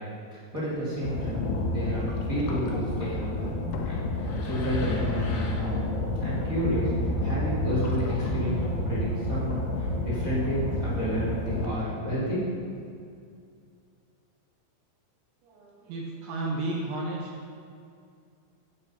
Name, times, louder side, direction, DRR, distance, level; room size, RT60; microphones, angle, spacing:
voice 1, 0.3-1.4 1.7-3.5 3.8-5.8 6.2-12.6, equal, 25° right, -9 dB, 1.8 m, -31 dB
Slam, 0.6-0.7 1.3-1.7 3.7-5.6 5.9-6.0, left 7 dB, 80° left, 2.8 m, -42 dB
sound 1, 1.0-11.7, left 2 dB, 65° left, 2.9 m, -30 dB
voice 2, 15.4-17.3, right 2 dB, 75° right, -1 dB, 2.9 m, -33 dB
8.6 x 8.5 x 5.5 m, 2.3 s
omnidirectional pair, 5.8 m